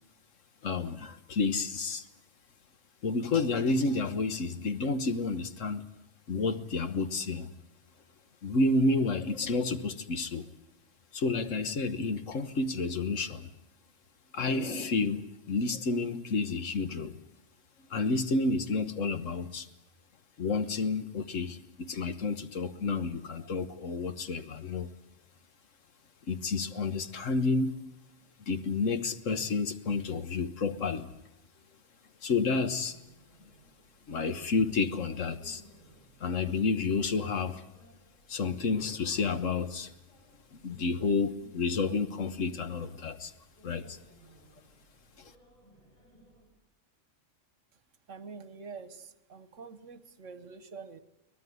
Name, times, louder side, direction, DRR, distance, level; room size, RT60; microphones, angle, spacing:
voice 1, 0.6-2.0 3.0-5.8 6.3-7.5 8.4-10.5 11.1-13.5 14.3-17.2 17.9-19.7 20.4-24.9 26.3-27.7 28.5-31.1 32.2-33.0 34.1-35.6 36.2-37.6 38.3-39.9 40.5-43.3 43.6-44.0, left 3 dB, 80° left, 10 dB, 1.6 m, -30 dB
sound 1, 32.5-46.5, right 1 dB, 30° left, 8.2 m, -59 dB
voice 2, 48.1-51.0, right 5 dB, 75° right, 13 dB, 1.5 m, -46 dB
23.5 x 18.5 x 9.4 m, 0.92 s
omnidirectional pair, 1.3 m